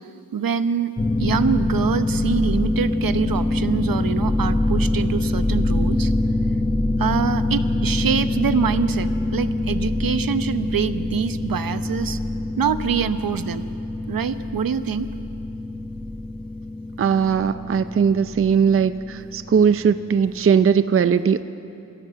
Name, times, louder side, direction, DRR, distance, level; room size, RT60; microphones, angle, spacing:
voice 1, 0.3-0.9 1.2-6.1 7.0-12.2 12.6-13.7 14.1-15.1, right 7 dB, 65° right, 11 dB, 0.9 m, -25 dB
sound 1, 1.0-20.5, left 2 dB, 10° left, 0.8 m, -24 dB
voice 2, 17.0-21.4, right 7 dB, 35° right, 12 dB, 0.5 m, -19 dB
27.0 x 16.0 x 7.6 m, 2.8 s
wide cardioid pair, 120°, 37 cm